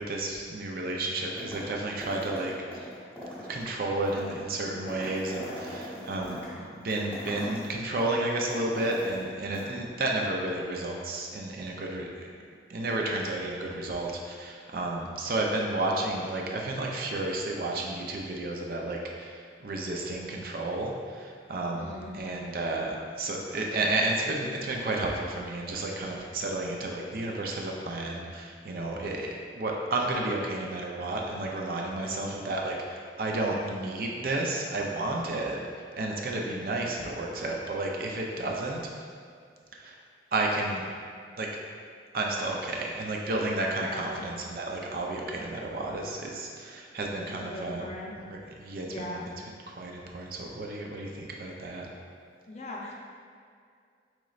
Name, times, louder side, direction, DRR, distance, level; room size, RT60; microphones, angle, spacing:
voice 1, 0.0-2.9 3.5-12.3 12.7-35.6 36.0-38.8 39.7-40.0 40.3-40.8 41.4-41.5 42.1-47.9 48.2-51.9, right 2 dB, 55° right, -1 dB, 0.5 m, -32 dB
sound 1, 1.4-1.8 2.0-9.3 9.5-9.6, equal, 10° left, 1.0 m, -41 dB
voice 2, 21.7-22.1 31.9-32.3 43.8-44.2 47.4-48.1 48.9-49.2 52.5-52.9, left 1 dB, 40° left, -2 dB, 0.5 m, -40 dB
5.1 x 3.1 x 2.4 m, 2.2 s
head